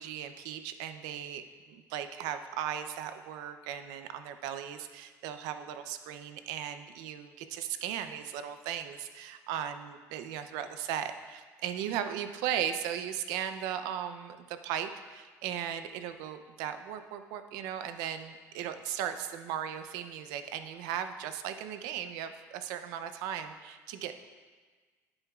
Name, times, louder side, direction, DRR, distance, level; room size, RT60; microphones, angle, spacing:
voice 1, 0.0-1.4 1.7-24.2, right 9 dB, 85° right, 9 dB, 0.5 m, -37 dB
10.5 x 8.7 x 2.4 m, 1.4 s
cardioid pair, 140°, 7 cm